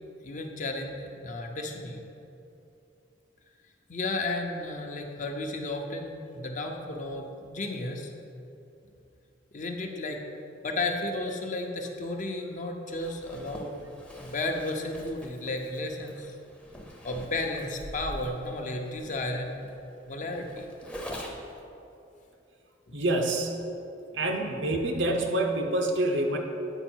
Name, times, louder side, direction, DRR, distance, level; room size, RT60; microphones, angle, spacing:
voice 1, 0.2-2.0 3.9-8.1 9.5-10.2 10.6-13.7 14.2-16.3 17.0-19.7 20.1-20.9 22.9-23.0, left 2 dB, 45° left, 3 dB, 0.7 m, -33 dB
Zipper (clothing), 12.9-21.6, equal, 5° left, 0.7 m, -44 dB
voice 2, 22.9-23.6 24.1-26.4, right 1 dB, 80° right, 2 dB, 0.8 m, -27 dB
8.9 x 4.7 x 4.5 m, 2.8 s
head